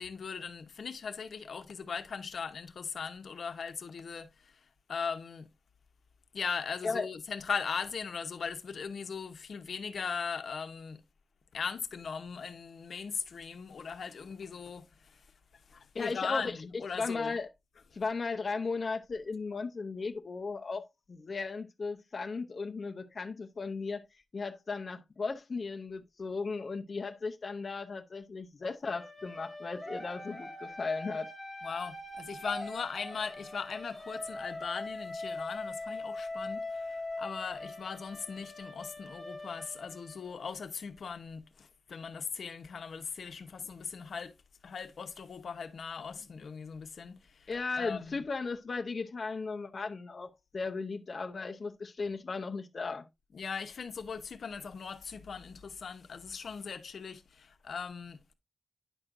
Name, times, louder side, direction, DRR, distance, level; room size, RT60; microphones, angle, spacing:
voice 1, 0.0-4.5 4.9-5.5 6.3-11.0 11.5-15.3 15.7-17.4 17.7-17.8 31.6-44.3 44.6-48.3 53.3-58.3, left 5 dB, 80° left, 0.9 m, -39 dB
voice 2, 15.9-16.5 17.0-17.5 17.9-24.0 24.3-31.3 47.5-53.1, left 4 dB, 50° left, 0.7 m, -36 dB
sound 1, 28.8-40.6, left 2 dB, ahead, 2.7 m, -42 dB
9.9 x 6.2 x 2.5 m
wide cardioid pair, 155°, 0 cm